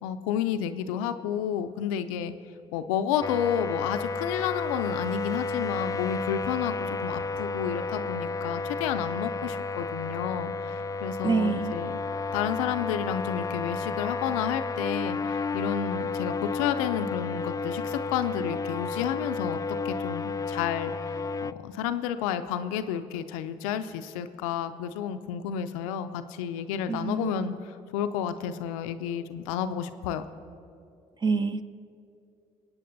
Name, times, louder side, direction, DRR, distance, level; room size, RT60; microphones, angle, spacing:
voice 1, 0.0-2.3 2.7-12.0 12.3-19.6 19.8-27.5 27.9-30.2, left 9 dB, 85° left, 10 dB, 0.4 m, -31 dB
sound 1, 3.2-21.5, left 3 dB, 20° left, 0.3 m, -32 dB
voice 2, 11.2-11.8 26.9-27.5 31.2-31.6, right 4 dB, 25° right, 11 dB, 0.7 m, -26 dB
24.5 x 8.6 x 2.6 m, 2.5 s
hypercardioid pair, 50°, 17 cm